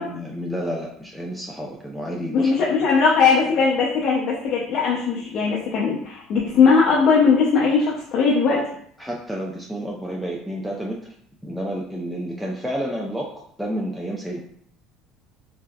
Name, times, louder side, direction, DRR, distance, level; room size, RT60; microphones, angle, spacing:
voice 1, 0.0-2.7 9.0-11.1 11.4-13.3 13.6-14.4, equal, ahead, -2 dB, 0.4 m, -30 dB
voice 2, 2.3-8.6, left 5 dB, 60° left, -4 dB, 0.5 m, -19 dB
3.4 x 2.1 x 2.2 m, 0.63 s
hypercardioid pair, 75°, 0 cm